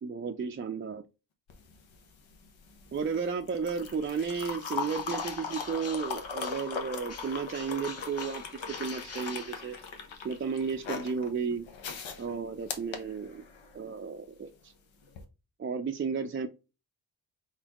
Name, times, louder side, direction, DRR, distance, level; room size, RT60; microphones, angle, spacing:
voice 1, 0.0-1.0 2.9-9.8 10.2-11.7 12.2-13.4 13.7-14.7 15.6-16.5, right 5 dB, 30° right, 4 dB, 0.4 m, -33 dB
sound 1, 1.5-13.8 15.1-15.2, left 5 dB, 85° left, 0.9 m, -39 dB
Bird, 4.7-6.8 7.1-10.2, left 4 dB, 35° left, 0.9 m, -47 dB
4.1 x 4.0 x 2.9 m, 0.29 s
cardioid pair, 70°, 45 cm